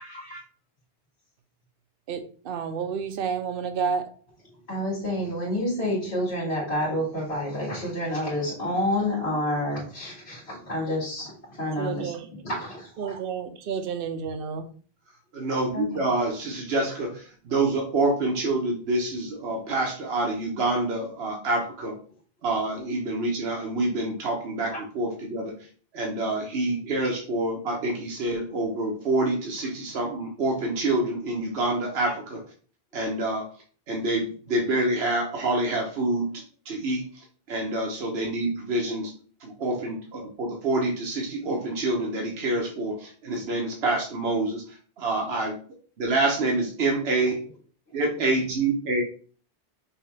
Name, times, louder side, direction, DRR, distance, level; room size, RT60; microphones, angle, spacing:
voice 1, 0.0-0.4 4.7-12.1 12.4-12.9 15.7-16.1 24.7-24.8 38.9-39.0, left 1 dB, 90° left, -8 dB, 2.1 m, -29 dB
voice 2, 2.1-4.1 11.8-12.3 13.0-14.7, right 6 dB, 65° right, 9 dB, 0.8 m, -30 dB
voice 3, 15.3-22.0 22.4-25.5 25.9-32.4 32.9-33.5 33.9-37.1 37.5-39.1 39.4-45.6 46.0-47.4 47.9-49.0, right 2 dB, 90° right, 0 dB, 1.2 m, -27 dB
5.8 x 2.8 x 3.3 m, 0.43 s
omnidirectional pair, 1.0 m